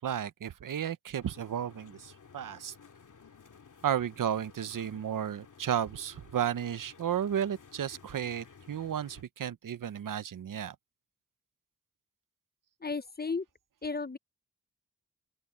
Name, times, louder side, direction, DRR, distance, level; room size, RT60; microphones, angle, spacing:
voice 1, 0.0-2.7 3.8-10.7, right 9 dB, 85° right, 0.8 m, -33 dB
sound 1, 1.2-9.2, left 6 dB, 75° left, 2.5 m, -55 dB
voice 2, 12.8-13.4 13.8-14.2, left 4 dB, 30° left, 0.9 m, -33 dB
open air
cardioid pair, 40°, 31 cm